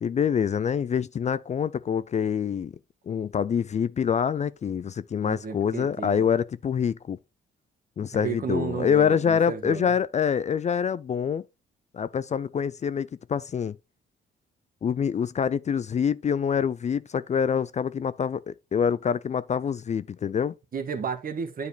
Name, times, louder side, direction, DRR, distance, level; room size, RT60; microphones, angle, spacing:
voice 1, 0.0-2.7 3.1-7.2 8.0-11.4 11.9-13.8 14.8-20.5, left 7 dB, 35° left, 0.4 m, -26 dB
voice 2, 5.2-6.3 8.1-9.9 20.7-21.7, right 6 dB, 45° right, 1.4 m, -33 dB
9.3 x 4.8 x 3.3 m
cardioid pair, 90°, 20 cm